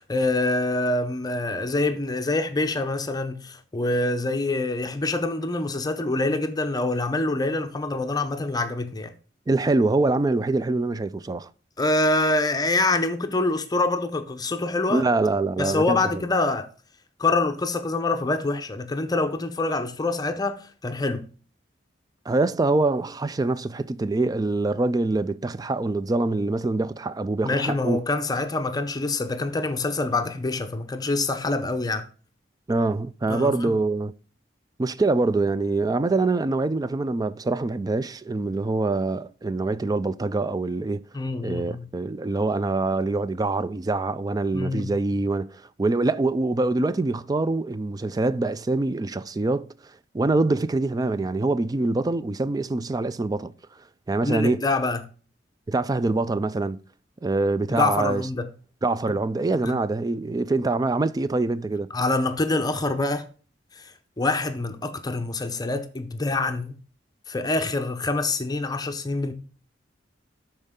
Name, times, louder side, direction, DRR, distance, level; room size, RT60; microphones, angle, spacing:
voice 1, 0.0-9.1 11.8-15.0 15.6-16.7 17.2-21.3 27.4-32.1 33.3-33.8 41.1-41.9 44.5-44.9 54.2-55.0 57.7-58.5 59.6-59.8 61.9-63.3 63.7-63.9 64.2-66.8 67.3-69.3, left 2 dB, 20° left, 0.7 m, -25 dB
voice 2, 9.5-11.5 14.9-16.2 22.3-28.0 32.7-34.1 34.8-41.0 41.4-49.7 50.1-53.5 54.1-54.6 55.7-56.8 57.2-58.2 58.8-61.9, right 2 dB, 20° right, 0.3 m, -24 dB
12.0 x 4.4 x 3.7 m
head